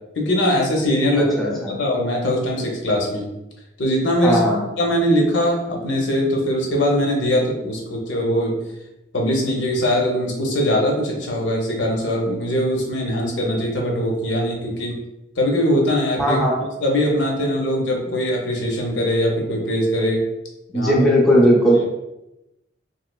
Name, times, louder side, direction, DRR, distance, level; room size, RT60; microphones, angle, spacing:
voice 1, 0.1-1.4 1.7-3.3 3.8-4.4 4.8-8.6 9.1-15.0 15.4-16.4 16.8-20.2 20.7-20.9, equal, 65° left, -1 dB, 0.6 m, -21 dB
voice 2, 1.1-1.7 4.2-4.6 16.2-16.6 20.7-21.8, equal, ahead, -4 dB, 0.5 m, -17 dB
3.1 x 2.7 x 2.3 m, 0.91 s
head